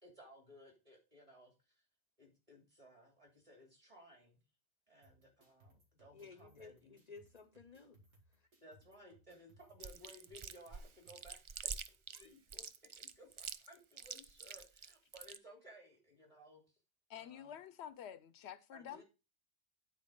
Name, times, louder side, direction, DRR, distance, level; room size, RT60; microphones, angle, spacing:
voice 1, 0.0-1.8 2.2-4.4 4.9-6.9 8.6-12.6 13.0-16.8 17.1-17.5 18.7-19.0, equal, 30° right, 3.2 m, -60 dB
sound 1, 5.0-11.2, right 1 dB, 90° right, 2.4 m, -68 dB
voice 2, 6.1-8.0 8.3-8.5 12.1-12.3, left 4 dB, 45° left, 0.7 m, -56 dB
Chewing mastication, 9.8-15.4, right 6 dB, 55° right, 0.3 m, -46 dB
voice 3, 17.1-19.0, left 9 dB, 85° left, 0.9 m, -49 dB
9.4 x 4.5 x 5.1 m
omnidirectional pair, 1.1 m